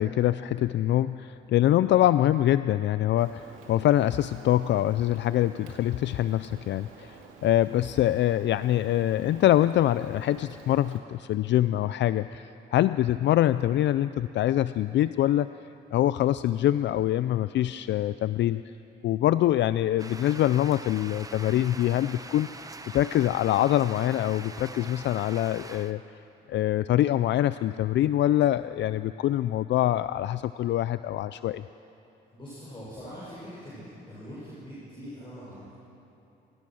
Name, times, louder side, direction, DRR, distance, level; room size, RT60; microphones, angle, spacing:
voice 1, 0.0-15.5 15.9-18.6 19.0-22.5 22.9-26.0 26.5-31.6, left 13 dB, 65° left, 14 dB, 0.4 m, -24 dB
Rain, 3.2-11.0, right 5 dB, 90° right, 2.4 m, -50 dB
sound 1, 20.0-25.9, right 3 dB, 15° right, 1.0 m, -43 dB
voice 2, 32.3-35.7, equal, 25° left, -8 dB, 6.4 m, -43 dB
25.5 x 17.0 x 6.3 m, 3.0 s
cardioid pair, 90°, 20 cm